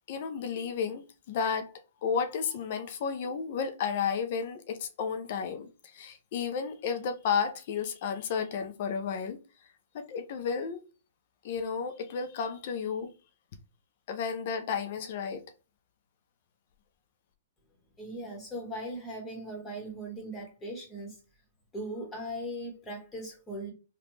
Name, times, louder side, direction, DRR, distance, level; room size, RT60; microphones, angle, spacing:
voice 1, 0.1-1.7 2.0-9.4 9.9-10.8 11.4-13.1 14.1-15.4, left 6 dB, 50° left, 0.6 m, -32 dB
voice 2, 18.0-21.2 21.7-23.7, right 1 dB, 15° left, 1.5 m, -39 dB
3.3 x 2.4 x 3.1 m
hypercardioid pair, 125°, 0 cm